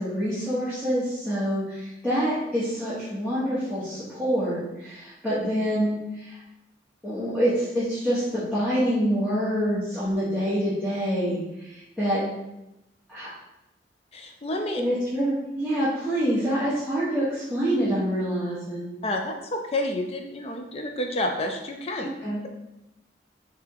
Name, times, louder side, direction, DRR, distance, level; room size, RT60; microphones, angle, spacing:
voice 1, 0.0-6.4 7.0-11.4 11.6-12.2 13.1-13.3 14.7-18.9 22.2-22.4, equal, 5° left, -11 dB, 1.2 m, -26 dB
voice 2, 14.1-14.8 19.0-22.1, left 1 dB, 35° left, 4 dB, 0.4 m, -29 dB
3.4 x 3.4 x 4.6 m, 0.91 s
head